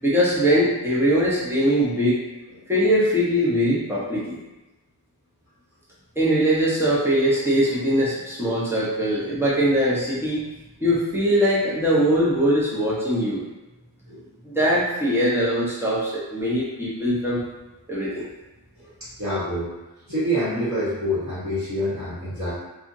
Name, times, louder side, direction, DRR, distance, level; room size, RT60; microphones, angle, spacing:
voice 1, 0.0-2.2 2.7-4.4 6.2-10.4 10.8-13.4 14.4-17.4 17.9-18.3, equal, 5° right, -8 dB, 0.9 m, -21 dB
voice 2, 18.8-19.7 20.1-22.5, equal, 35° right, -11 dB, 1.3 m, -27 dB
2.8 x 2.4 x 2.6 m, 1.0 s
wide cardioid pair, 105°, 43 cm